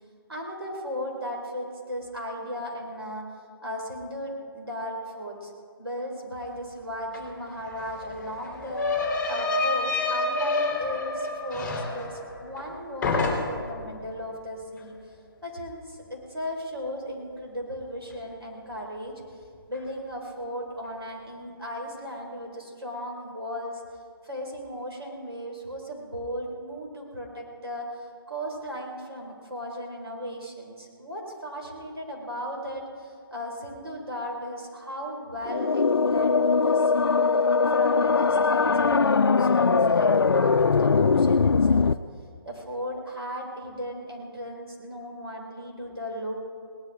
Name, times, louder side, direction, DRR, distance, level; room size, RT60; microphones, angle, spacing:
voice 1, 0.3-3.3 3.6-5.5 5.8-8.9 9.3-15.2 15.4-19.4 19.7-23.8 24.2-37.2 37.7-41.9 42.4-46.5, equal, 85° right, 0 dB, 4.5 m, -36 dB
sound 1, 7.1-7.2 7.5-12.7 13.0-13.8, left 3 dB, 5° left, 2.9 m, -28 dB
sound 2, 35.4-41.9, left 4 dB, 75° left, 0.4 m, -21 dB
21.0 x 18.0 x 3.6 m, 2.2 s
figure-of-eight pair, 145°, 13 cm